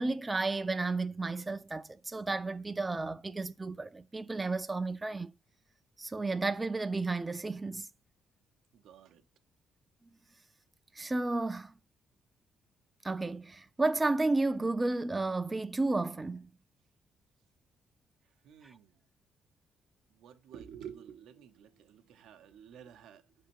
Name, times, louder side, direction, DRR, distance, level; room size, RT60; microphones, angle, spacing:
voice 1, 0.0-5.3 6.0-7.9 10.9-11.7 13.0-16.5 18.6-18.7, right 3 dB, 20° right, 0.3 m, -32 dB
voice 2, 8.7-9.2 18.4-19.0 20.1-23.3, right 8 dB, 85° right, 0.5 m, -51 dB
5.2 x 3.3 x 2.8 m
cardioid pair, 90°, 0 cm